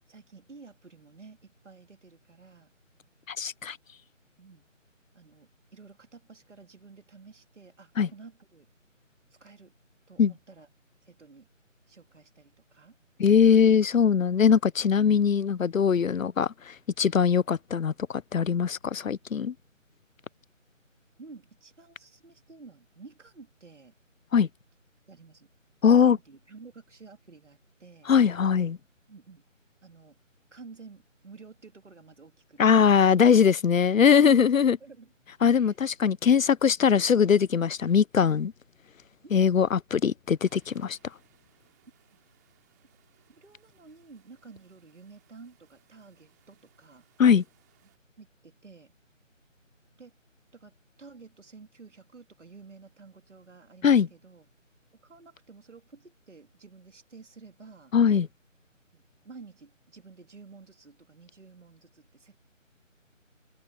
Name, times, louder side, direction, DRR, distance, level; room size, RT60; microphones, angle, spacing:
voice 1, 0.1-2.7 4.4-4.6 5.1-8.7 9.4-9.7 10.1-10.7 11.0-11.5 11.9-12.9 21.2-23.9 25.1-25.5 25.9-28.1 29.1-29.4 29.8-30.2 30.5-33.1 34.2-34.5 34.8-35.1 35.5-35.7 39.2-39.4 43.3-47.1 47.8-47.9 48.2-48.9 50.0-50.1 50.5-54.5 55.0-57.9 58.9-62.4, right 4 dB, 65° right, 3.3 m, -51 dB
voice 2, 3.3-3.8 8.0-8.1 10.2-10.3 13.2-19.5 24.3-24.5 25.8-26.2 28.1-28.8 32.6-34.8 35.4-38.5 39.3-41.0 47.2-47.4 53.8-54.1 57.9-58.3, left 7 dB, 80° left, 0.7 m, -21 dB
sound 1, 40.4-48.0, right 15 dB, 15° right, 4.6 m, -68 dB
open air
figure-of-eight pair, 170°, 39 cm